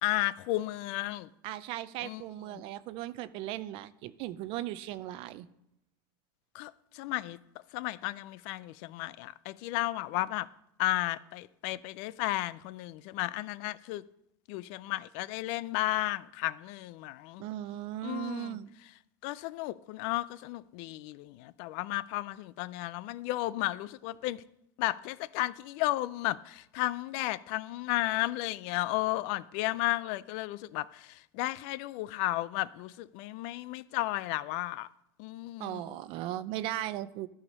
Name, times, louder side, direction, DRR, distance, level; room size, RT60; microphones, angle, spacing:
voice 1, 0.0-1.3 2.0-2.2 6.5-7.4 7.7-10.5 10.8-14.0 14.5-17.4 18.0-18.6 19.2-24.4 24.8-34.9 35.2-36.0, left 17 dB, 55° left, 0.4 m, -33 dB
voice 2, 1.4-5.5 17.4-18.7 35.6-37.3, right 13 dB, 50° right, 0.5 m, -37 dB
12.5 x 4.9 x 5.3 m
supercardioid pair, 130°, 12 cm